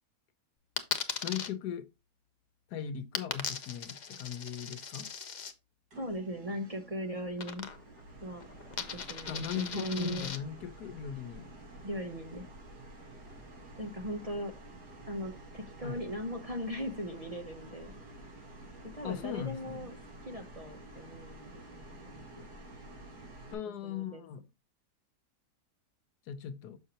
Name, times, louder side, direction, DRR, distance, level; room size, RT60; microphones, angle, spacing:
Coin (dropping), 0.8-1.5 3.2-5.5 7.4-8.0 8.3-10.4, left 6 dB, 50° left, 0.5 m, -38 dB
voice 1, 1.2-1.9 2.7-5.1 9.3-11.5 15.8-16.0 19.0-19.9 23.5-24.4 26.3-26.8, left 9 dB, 85° left, 1.4 m, -39 dB
sound 1, 5.9-23.5, right 2 dB, 85° right, 2.5 m, -50 dB
voice 2, 6.0-7.7 8.2-8.4 8.8-10.3 11.8-12.5 13.8-14.5 15.1-17.9 18.9-20.0 20.3-22.5 23.8-24.2, equal, 30° right, 0.8 m, -39 dB
6.6 x 6.3 x 2.9 m
omnidirectional pair, 1.7 m